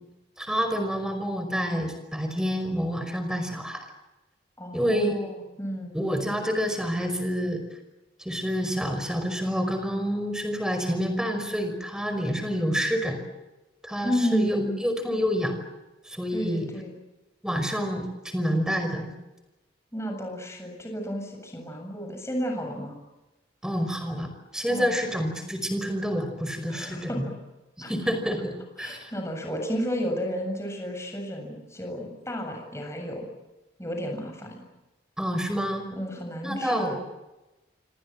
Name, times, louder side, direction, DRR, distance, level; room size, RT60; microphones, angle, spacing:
voice 1, 0.4-3.9 4.7-5.2 5.9-7.6 8.2-13.2 13.8-15.6 16.1-16.7 17.4-19.1 23.6-24.3 24.5-27.2 27.8-29.1 35.2-35.9 36.4-36.9, equal, 5° right, 7 dB, 5.3 m, -28 dB
voice 2, 4.6-6.0 14.0-14.8 16.3-16.9 19.9-23.0 24.7-25.0 26.7-27.3 27.8-28.1 28.8-33.3 33.8-34.6 35.9-37.0, equal, 15° left, 3 dB, 7.6 m, -32 dB
28.0 x 25.5 x 7.6 m, 1.0 s
head